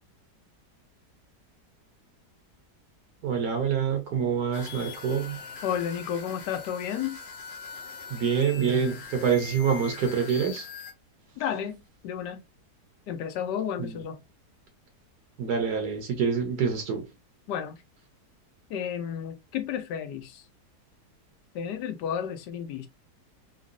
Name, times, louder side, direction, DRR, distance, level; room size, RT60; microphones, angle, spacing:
voice 1, 3.2-5.4 8.1-10.7 13.8-13.9 15.4-17.1, right 6 dB, 75° right, 1.2 m, -26 dB
sound 1, 4.5-10.9, left 6 dB, 60° left, 0.7 m, -42 dB
voice 2, 5.6-7.2 11.4-12.4 13.1-14.2 17.5-17.8 18.7-20.5 21.5-22.9, left 8 dB, 90° left, 1.2 m, -32 dB
3.8 x 2.0 x 2.5 m
omnidirectional pair, 1.8 m